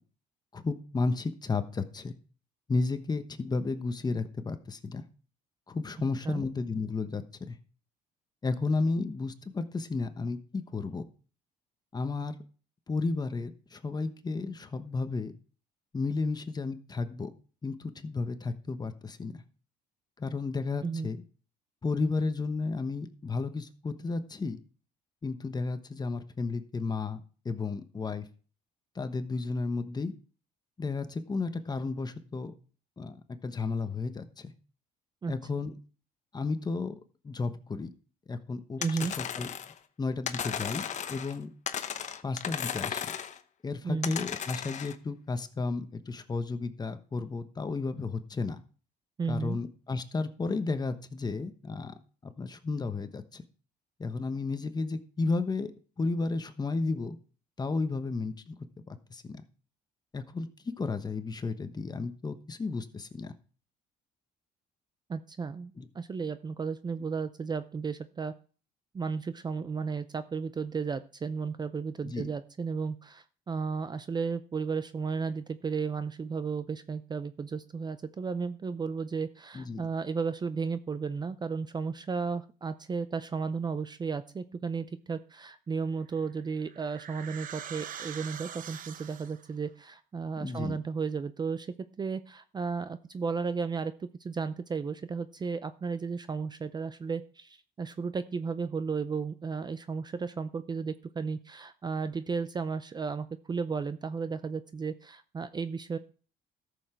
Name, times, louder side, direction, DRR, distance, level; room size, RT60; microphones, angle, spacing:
voice 1, 0.5-2.1 2.7-5.0 5.7-7.2 7.5-7.6 8.4-11.0 11.9-12.3 12.9-15.3 15.9-17.3 17.6-19.3 20.2-21.2 21.8-24.6 25.2-28.2 28.9-30.1 30.8-32.5 33.0-34.5 35.3-35.7 36.3-36.9 37.2-37.9 38.3-39.5 40.0-41.5 42.2-43.1 43.6-48.6 49.3-51.9 52.2-53.4 54.0-55.7 56.0-57.2 57.6-58.5 58.9-59.4 60.1-60.5 60.8-63.3 65.8-65.9 72.0-72.3 79.5-79.8 90.4-90.8, left 3 dB, 25° left, 9 dB, 1.1 m, -33 dB
sound 1, 38.8-39.8 40.3-41.4 41.7-43.4 44.0-45.0, left 8 dB, 45° left, 0.9 m, -35 dB
voice 2, 38.8-39.1 43.8-44.1 49.2-49.6 65.1-68.3 68.9-91.7 92.0-106.0, right 5 dB, 25° right, 13 dB, 0.5 m, -34 dB
sound 2, 86.1-89.5, right 9 dB, 55° right, 0.8 m, -44 dB
13.5 x 6.9 x 4.5 m, 0.39 s
cardioid pair, 110°, 17 cm